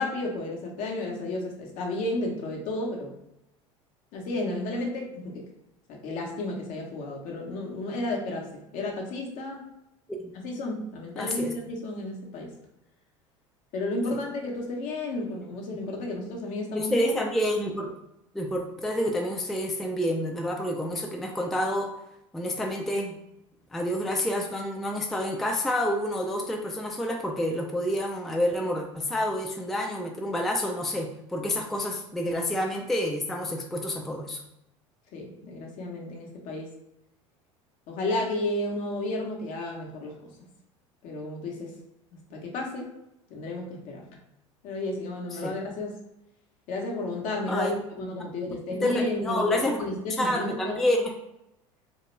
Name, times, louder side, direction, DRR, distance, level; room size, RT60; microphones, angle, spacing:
voice 1, 0.0-3.1 4.1-5.4 5.9-9.6 10.4-12.5 13.7-17.1 35.1-36.7 37.9-40.1 41.0-41.7 42.3-42.9 43.3-44.0 44.6-45.9 46.7-50.8, left 2 dB, 55° left, 0 dB, 0.8 m, -32 dB
voice 2, 11.2-11.5 16.7-17.9 18.3-21.9 22.3-23.2 23.7-34.4 45.3-45.5 47.5-47.8 48.5-48.6 48.8-49.9 50.2-51.1, left 1 dB, ahead, 2 dB, 0.3 m, -28 dB
2.2 x 2.0 x 3.0 m, 0.84 s
hypercardioid pair, 70°, 16 cm